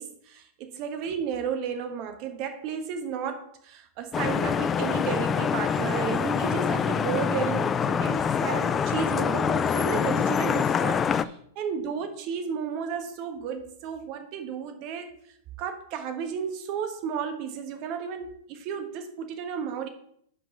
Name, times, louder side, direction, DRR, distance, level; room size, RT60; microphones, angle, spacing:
voice 1, 0.0-15.1 15.6-19.9, right 7 dB, 45° right, 1.3 m, -33 dB
Vehicle horn car horn honking / Traffic noise roadway noise, 4.1-11.2, left 7 dB, 25° left, 0.4 m, -25 dB
5.3 x 5.3 x 6.6 m
hypercardioid pair, 105°, 0 cm